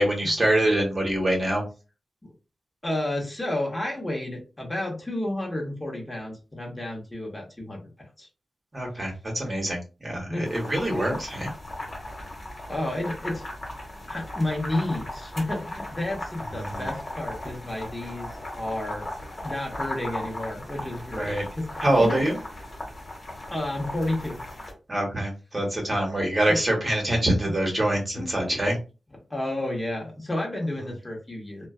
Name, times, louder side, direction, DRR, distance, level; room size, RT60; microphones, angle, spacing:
voice 1, 0.0-1.6 8.7-11.5 16.6-16.9 21.2-21.4 21.8-22.4 24.9-28.8, right 1 dB, 30° right, 0 dB, 1.1 m, -25 dB
voice 2, 2.8-7.9 8.2-8.3 10.3-10.5 10.9-11.2 12.7-13.4 14.1-19.1 19.4-22.3 23.5-24.4 26.5-26.6 28.1-28.5 29.3-31.7, left 1 dB, 20° left, -1 dB, 0.9 m, -31 dB
sound 1, 10.5-24.7, left 1 dB, 45° left, 1.2 m, -37 dB
2.4 x 2.2 x 2.3 m, 0.31 s
cardioid pair, 60°, 0 cm